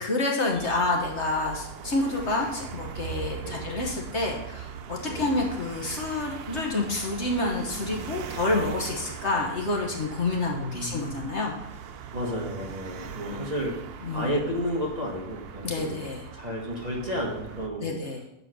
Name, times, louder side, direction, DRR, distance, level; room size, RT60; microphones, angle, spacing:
voice 1, 0.0-11.5 13.3-13.4 14.0-14.3 15.6-16.2 17.8-18.2, left 2 dB, 50° left, 0 dB, 1.4 m, -28 dB
sound 1, 0.5-17.7, right 8 dB, 70° right, 0.5 m, -40 dB
voice 2, 3.4-3.7 5.0-5.3 10.5-11.2 12.1-13.7 14.1-16.0 16.3-18.0, equal, 30° right, -2 dB, 1.3 m, -32 dB
8.0 x 4.8 x 6.2 m, 0.85 s
omnidirectional pair, 1.6 m